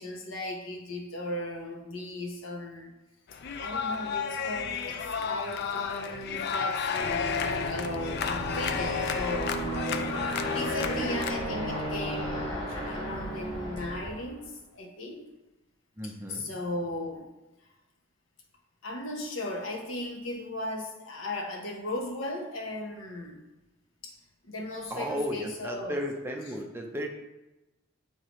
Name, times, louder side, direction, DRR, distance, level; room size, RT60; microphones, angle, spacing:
voice 1, 0.0-2.9 3.6-9.6 10.4-14.4 14.7-15.2 16.0-17.3 18.8-23.4 24.0-24.1 24.4-26.0, left 1 dB, 75° left, 1 dB, 1.1 m, -37 dB
sound 1, 3.3-11.4, left 6 dB, 50° left, 0.4 m, -32 dB
Aircraft, 7.0-14.3, equal, 25° left, 1.9 m, -34 dB
voice 2, 16.0-16.5 24.9-27.1, equal, 10° right, 1 dB, 0.5 m, -34 dB
8.4 x 3.8 x 3.1 m, 1.0 s
head